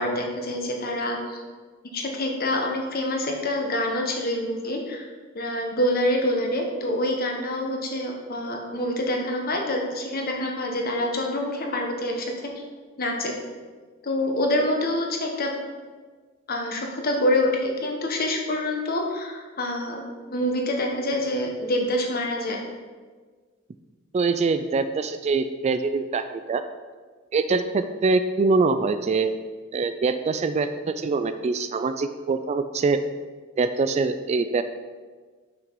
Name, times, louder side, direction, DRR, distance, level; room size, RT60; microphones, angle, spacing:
voice 1, 0.0-1.4 1.8-5.1 5.3-12.5 13.0-13.3 14.0-15.5 16.5-20.0 20.3-22.6, left 1 dB, 45° left, 1 dB, 1.1 m, -26 dB
voice 2, 24.1-26.6 27.3-29.3 29.7-33.0 33.6-34.6, right 4 dB, 35° right, 10 dB, 0.3 m, -24 dB
6.0 x 6.0 x 4.6 m, 1.4 s
head